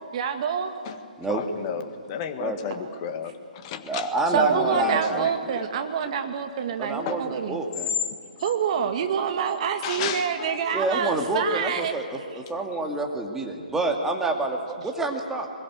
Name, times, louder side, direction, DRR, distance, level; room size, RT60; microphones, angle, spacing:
voice 1, 0.1-0.7 2.7-2.9 4.3-7.6 8.4-12.0, right 7 dB, 45° right, 7 dB, 2.1 m, -27 dB
voice 2, 0.9-5.7 7.1-7.3 9.8-10.8, left 8 dB, 30° left, 8 dB, 1.6 m, -34 dB
voice 3, 3.8-5.3 6.8-7.9 10.7-15.5, right 2 dB, 5° right, 2 dB, 2.2 m, -27 dB
23.0 x 21.0 x 8.3 m, 2.4 s
figure-of-eight pair, 135°, 5 cm